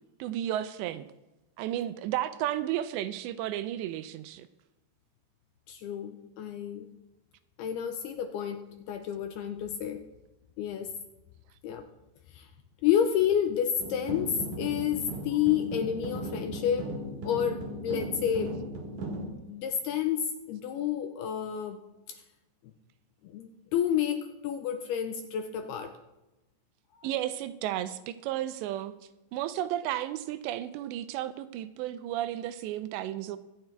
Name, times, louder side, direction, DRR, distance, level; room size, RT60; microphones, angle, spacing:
voice 1, 0.2-1.1 1.6-4.5 27.0-29.0 29.3-33.4, right 12 dB, 80° right, 12 dB, 2.7 m, -33 dB
voice 2, 5.7-6.9 7.6-10.0 10.6-10.9 11.6-11.9 12.3-12.5 12.8-16.9 17.2-18.6 19.5-21.8 22.1-22.2 23.2-25.9 27.0-27.1, left 9 dB, 80° left, 7 dB, 2.4 m, -30 dB
sound 1, 13.8-19.3, right 1 dB, 55° right, 2.5 m, -37 dB
24.0 x 9.1 x 3.4 m, 1.0 s
omnidirectional pair, 5.2 m